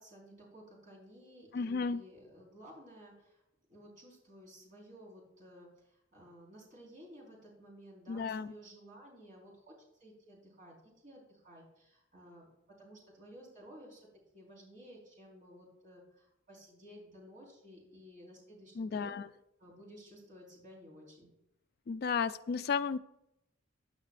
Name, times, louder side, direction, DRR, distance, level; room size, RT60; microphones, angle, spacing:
voice 1, 0.0-3.4 3.7-12.5 12.8-14.1 14.3-19.2 19.6-21.3, equal, 40° right, -4 dB, 4.6 m, -55 dB
voice 2, 1.5-2.0 8.1-8.5 18.8-19.3 21.9-23.0, left 5 dB, 50° left, 12 dB, 0.4 m, -33 dB
15.5 x 8.9 x 2.5 m, 0.83 s
head